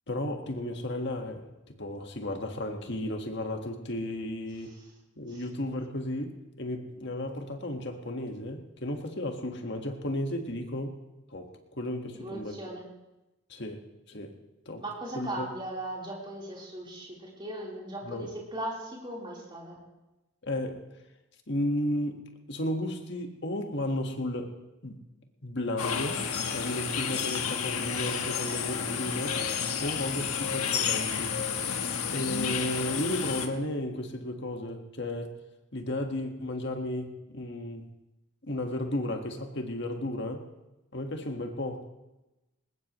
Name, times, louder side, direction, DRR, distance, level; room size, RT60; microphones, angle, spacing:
voice 1, 0.1-1.5 1.8-4.7 5.2-6.3 6.6-10.9 11.3-12.6 13.5-13.8 14.1-14.3 14.6-14.8 15.1-15.5 18.0-18.3 20.4-20.8 21.5-22.2 22.5-24.5 24.8-25.0 25.4-26.2 26.5-29.4 29.8-31.4 32.0-35.4 35.7-37.9 38.4-40.4 40.9-41.8, left 1 dB, 50° left, 4 dB, 1.7 m, -33 dB
voice 2, 12.2-12.8 14.8-19.8, right 1 dB, 20° right, -4 dB, 3.9 m, -38 dB
sound 1, 25.8-33.5, left 7 dB, 90° left, 1.4 m, -31 dB
21.0 x 19.5 x 3.1 m, 1.0 s
head